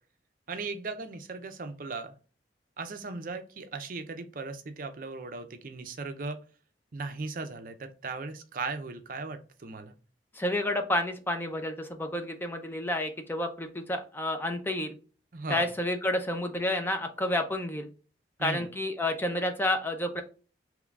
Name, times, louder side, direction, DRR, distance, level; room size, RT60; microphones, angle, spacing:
voice 1, 0.5-2.1 2.8-6.4 6.9-9.9 15.3-15.7 18.4-18.7, right 3 dB, 50° right, 8 dB, 0.5 m, -37 dB
voice 2, 10.3-14.9 15.5-17.9 18.4-20.2, left 1 dB, 10° left, 5 dB, 0.4 m, -30 dB
3.6 x 3.0 x 2.3 m, 0.36 s
head